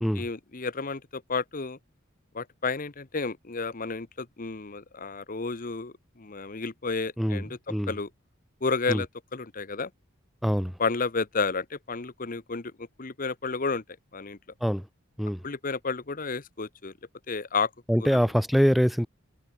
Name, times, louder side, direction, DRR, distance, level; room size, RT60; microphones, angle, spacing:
voice 1, 0.1-1.8 2.3-7.6 7.9-8.1 8.6-9.9 10.8-13.8 14.1-14.4 15.4-16.9 17.3-17.7 18.1-18.2, left 4 dB, 40° left, 1.0 m, -31 dB
voice 2, 10.4-10.8 14.6-14.9 15.2-15.4 17.9-19.1, equal, ahead, 0.5 m, -24 dB
head